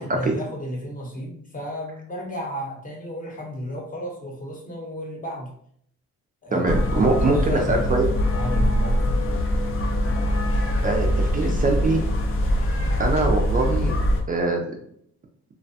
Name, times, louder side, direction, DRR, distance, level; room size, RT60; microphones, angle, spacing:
voice 1, 0.0-5.5 6.4-9.5, equal, 25° left, 0 dB, 0.9 m, -33 dB
voice 2, 6.5-8.0 10.8-12.0 13.0-13.9 14.3-14.6, right 3 dB, 30° right, 1 dB, 0.4 m, -22 dB
sound 1, 6.7-14.2, left 1 dB, 45° left, 0.5 m, -23 dB
2.4 x 2.1 x 2.7 m, 0.66 s
cardioid pair, 90°, 30 cm